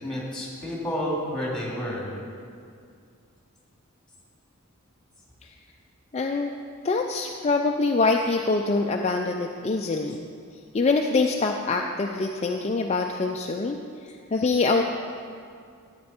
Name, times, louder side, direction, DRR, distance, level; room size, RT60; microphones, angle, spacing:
voice 1, 0.0-2.1, equal, 5° left, -5 dB, 2.6 m, -30 dB
voice 2, 6.1-6.5 6.8-10.2 10.7-13.8 14.0-14.8, left 3 dB, 30° left, 2 dB, 0.4 m, -24 dB
12.5 x 8.8 x 4.4 m, 2.3 s
head